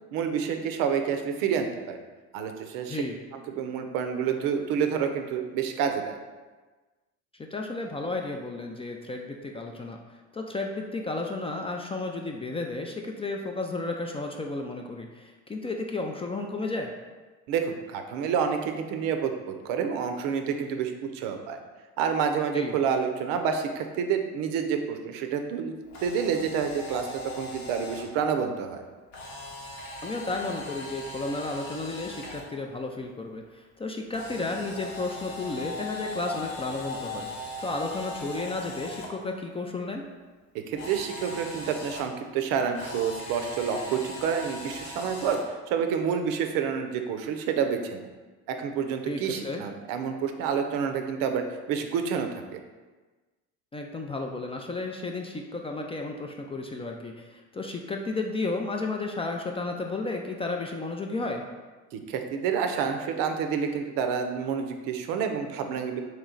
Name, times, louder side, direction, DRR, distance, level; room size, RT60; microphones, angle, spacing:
voice 1, 0.1-2.0 2.3-3.0 3.3-6.2 17.5-21.6 22.0-25.8 26.0-28.8 40.7-48.0 48.6-52.6 61.9-66.0, right 7 dB, 65° right, 6 dB, 0.6 m, -28 dB
voice 2, 7.3-16.9 22.5-22.7 30.0-40.1 49.1-49.6 53.7-61.4, left 3 dB, 15° left, 2 dB, 0.3 m, -33 dB
Camera, 25.8-28.0 29.1-32.4 34.1-39.1 40.7-42.0 42.7-45.4, left 2 dB, 70° left, 1.0 m, -39 dB
3.1 x 3.0 x 3.7 m, 1.3 s
hypercardioid pair, 70°, 36 cm